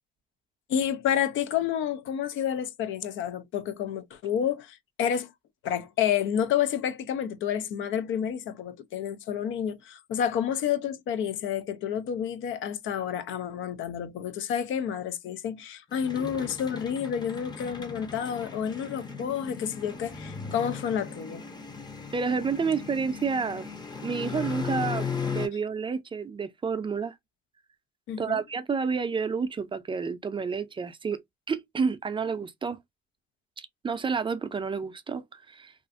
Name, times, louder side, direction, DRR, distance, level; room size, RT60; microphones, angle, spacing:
voice 1, 0.7-5.3 5.6-21.4 28.1-28.4, left 9 dB, 80° left, 0.4 m, -29 dB
sound 1, 15.9-25.5, left 5 dB, 20° left, 0.6 m, -37 dB
voice 2, 22.1-23.7 24.0-27.1 28.2-31.2 31.5-32.8 33.6-35.7, right 5 dB, 25° right, 0.4 m, -30 dB
2.4 x 2.4 x 2.4 m
cardioid pair, 90°, 20 cm